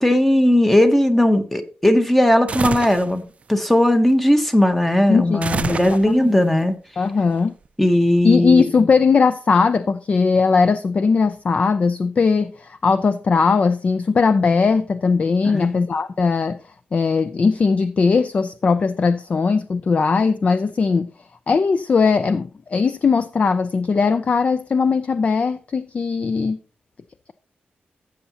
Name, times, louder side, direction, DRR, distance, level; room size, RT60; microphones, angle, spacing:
voice 1, 0.0-3.2 3.5-6.8 7.8-8.6 15.4-15.8, left 1 dB, 5° left, 0.8 m, -17 dB
sound 1, 2.5-3.1 5.4-6.4, right 5 dB, 35° right, 0.4 m, -26 dB
voice 2, 5.1-5.4 5.7-6.4 7.0-7.5 8.2-16.6 16.9-21.1 21.5-26.6, left 4 dB, 35° left, 0.3 m, -19 dB
13.5 x 7.1 x 2.8 m
wide cardioid pair, 170°, 4 cm